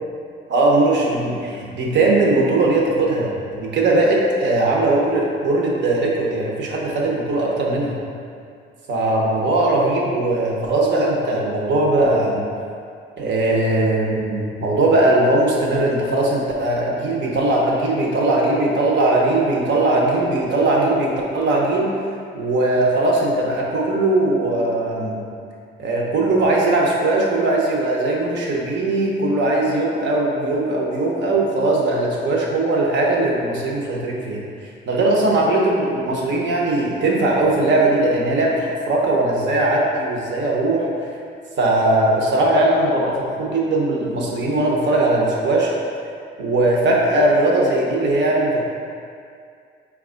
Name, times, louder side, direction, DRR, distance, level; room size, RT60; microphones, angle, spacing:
voice 1, 0.5-7.9 8.9-12.4 13.2-21.9 22.3-25.2 25.8-34.4 34.9-40.9 41.6-45.7 46.4-48.6, right 2 dB, 65° right, -3 dB, 0.9 m, -19 dB
4.6 x 2.4 x 3.6 m, 2.3 s
cardioid pair, 90°, 20 cm